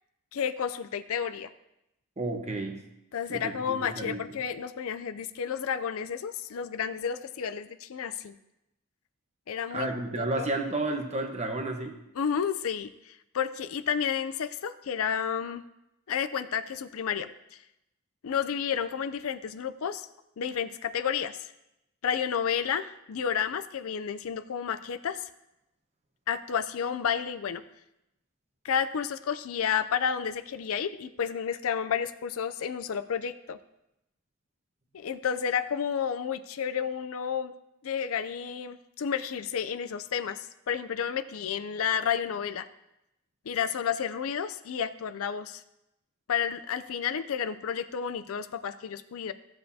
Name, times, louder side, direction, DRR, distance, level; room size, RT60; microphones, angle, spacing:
voice 1, 0.3-1.5 3.1-8.4 9.5-10.5 12.2-15.6 16.1-17.3 18.2-20.1 20.4-21.5 22.0-25.3 26.3-27.6 28.6-33.6 34.9-37.5 37.8-42.7 43.5-45.6 46.3-49.3, left 7 dB, 65° left, 12 dB, 0.4 m, -31 dB
voice 2, 2.2-2.8 3.3-4.2 9.7-12.0, right 2 dB, 30° right, 4 dB, 1.1 m, -32 dB
15.0 x 7.6 x 2.8 m, 0.88 s
head